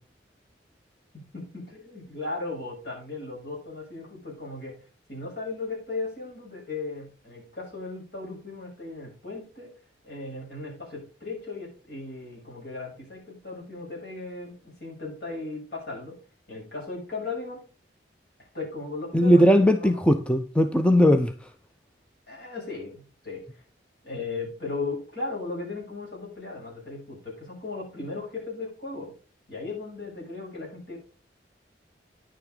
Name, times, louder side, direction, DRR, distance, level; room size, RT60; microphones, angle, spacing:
voice 1, 1.1-4.8 5.1-9.7 10.0-16.2 16.5-17.6 18.4-20.0 22.3-23.6 24.0-29.1 29.5-31.0, left 3 dB, 60° left, 7.0 m, -36 dB
voice 2, 19.1-21.3, equal, 5° left, 0.5 m, -19 dB
10.0 x 8.8 x 3.9 m
head